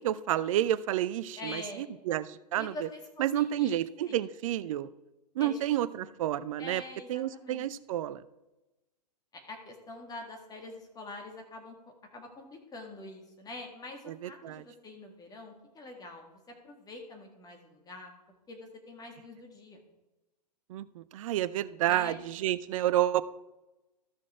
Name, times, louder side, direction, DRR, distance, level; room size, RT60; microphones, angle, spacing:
voice 1, 0.0-2.7 3.2-4.9 5.4-6.8 7.1-8.2 14.1-14.6 20.7-23.2, right 12 dB, 50° right, 15 dB, 0.6 m, -30 dB
voice 2, 1.4-1.9 2.6-4.3 5.4-6.1 6.6-7.7 9.3-11.8 12.1-18.1 18.5-19.8 21.9-22.2, left 2 dB, 20° left, 3 dB, 2.0 m, -45 dB
13.5 x 6.2 x 4.4 m, 1.0 s
figure-of-eight pair, 105°, 21 cm